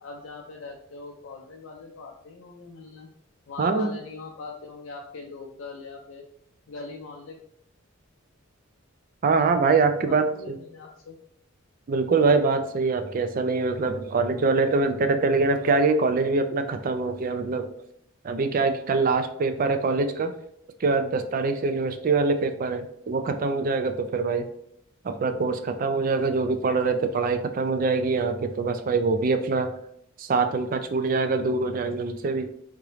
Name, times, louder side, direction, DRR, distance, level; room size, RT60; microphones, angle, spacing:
voice 1, 0.0-3.1 3.5-6.2 6.7-7.4 10.1-11.2, left 4 dB, 60° left, 0 dB, 0.4 m, -41 dB
voice 2, 3.6-3.9 9.2-10.6 11.9-17.7 18.2-20.3 20.8-24.5 25.0-29.7 30.2-32.5, right 4 dB, 40° right, 8 dB, 0.3 m, -24 dB
3.6 x 2.9 x 3.2 m, 0.72 s
head